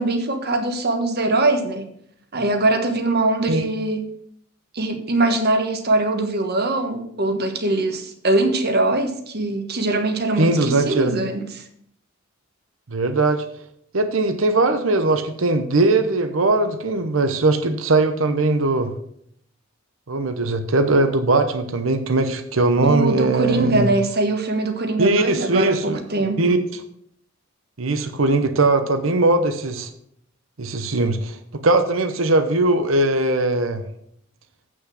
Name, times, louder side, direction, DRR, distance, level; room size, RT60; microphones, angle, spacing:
voice 1, 0.0-1.9 2.3-4.1 4.7-11.6 22.8-26.6, right 2 dB, 50° right, 1.3 m, -22 dB
voice 2, 10.4-11.2 12.9-13.4 13.9-18.9 20.1-23.9 25.0-26.0 26.4-26.8 27.8-29.9 30.6-33.8, right 2 dB, 70° right, 0.9 m, -20 dB
8.2 x 6.2 x 6.2 m
head